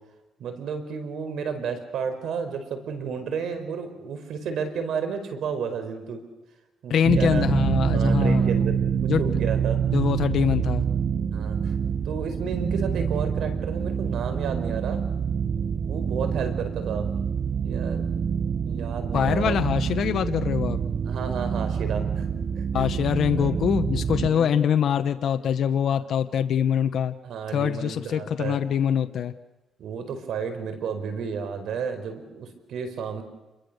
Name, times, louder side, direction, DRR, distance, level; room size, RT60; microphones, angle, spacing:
voice 1, 0.4-6.2 6.8-7.6 7.9-8.9 9.2-9.8 11.3-11.7 12.0-15.0 15.8-17.1 17.6-19.6 21.0-22.9 23.3-23.6 24.0-24.6 27.2-28.6 29.8-33.2, right 6 dB, 75° right, 8 dB, 4.6 m, -32 dB
voice 2, 6.9-8.7 9.1-9.2 9.9-10.8 19.1-20.8 22.7-27.1 27.5-29.3, left 8 dB, 65° left, 9 dB, 1.0 m, -24 dB
sound 1, 7.0-24.3, right 7 dB, 50° right, 1.3 m, -26 dB
28.5 x 22.5 x 6.8 m, 1.0 s
cardioid pair, 100°, 0 cm